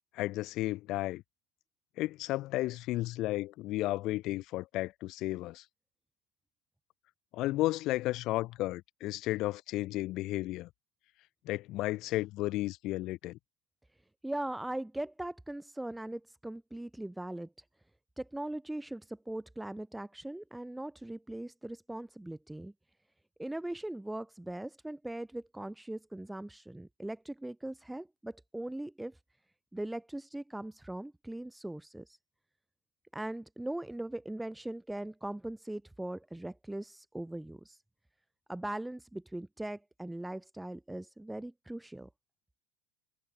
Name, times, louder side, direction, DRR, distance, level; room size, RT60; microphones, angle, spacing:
voice 1, 0.1-1.2 2.0-5.6 7.3-10.7 11.5-13.4, left 17 dB, 45° left, 3.7 m, -33 dB
voice 2, 13.9-17.7 18.2-22.7 23.4-29.2 29.7-32.2 33.1-37.8 38.5-42.1, right 1 dB, 5° right, 3.5 m, -40 dB
figure-of-eight pair, 85°, 0 cm